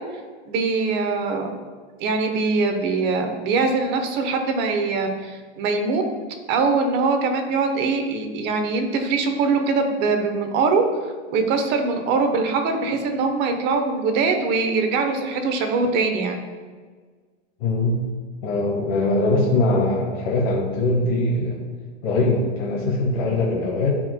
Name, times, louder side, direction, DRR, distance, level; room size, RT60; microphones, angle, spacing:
voice 1, 0.5-1.5 2.0-6.0 6.5-10.8 11.3-16.4, right 4 dB, 30° right, 5 dB, 0.9 m, -22 dB
voice 2, 17.6-18.0 18.4-21.5 22.0-23.9, left 2 dB, 55° left, -4 dB, 1.5 m, -21 dB
13.0 x 4.6 x 2.2 m, 1.5 s
hypercardioid pair, 140°, 34 cm